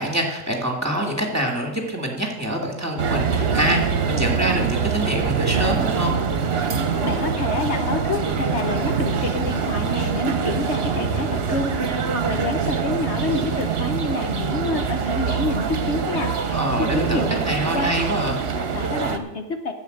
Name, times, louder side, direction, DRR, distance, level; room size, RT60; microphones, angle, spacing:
voice 1, 0.0-6.1 16.5-18.4, right 1 dB, 15° right, 0 dB, 1.9 m, -25 dB
sound 1, 3.0-19.2, right 6 dB, 55° right, 1.1 m, -24 dB
voice 2, 7.0-16.6 16.9-17.4 17.7-17.9 18.5-19.7, left 2 dB, 60° left, 5 dB, 1.2 m, -28 dB
10.5 x 7.3 x 7.8 m, 0.99 s
omnidirectional pair, 1.3 m